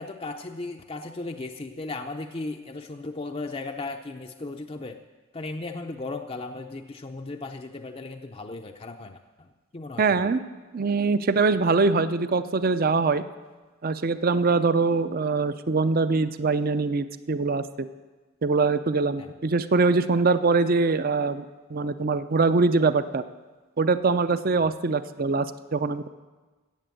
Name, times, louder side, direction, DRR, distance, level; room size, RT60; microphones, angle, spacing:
voice 1, 0.0-5.0 5.3-9.2 9.7-10.3 19.2-19.3, left 3 dB, 25° left, 4 dB, 0.5 m, -36 dB
voice 2, 10.0-10.4 10.7-13.2 13.8-17.6 18.4-23.2 23.8-26.1, right 4 dB, 40° right, 13 dB, 0.5 m, -23 dB
14.5 x 8.3 x 7.7 m, 1.3 s
head